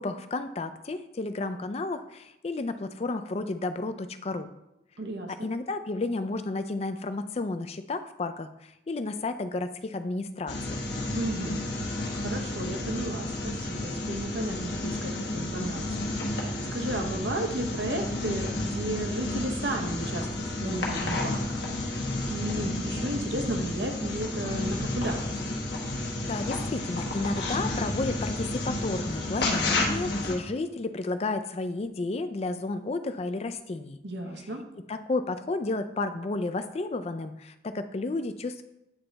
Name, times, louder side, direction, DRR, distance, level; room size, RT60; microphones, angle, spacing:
voice 1, 0.0-4.5 5.3-10.8 26.2-34.0 34.9-38.6, left 3 dB, 35° left, 9 dB, 0.4 m, -32 dB
voice 2, 5.0-5.5 11.1-11.6 12.1-21.6 22.3-25.4 34.0-34.6, right 1 dB, 80° right, 2 dB, 1.0 m, -34 dB
sound 1, 10.5-30.3, left 2 dB, 70° left, 1.1 m, -31 dB
8.7 x 3.3 x 4.0 m, 0.85 s
head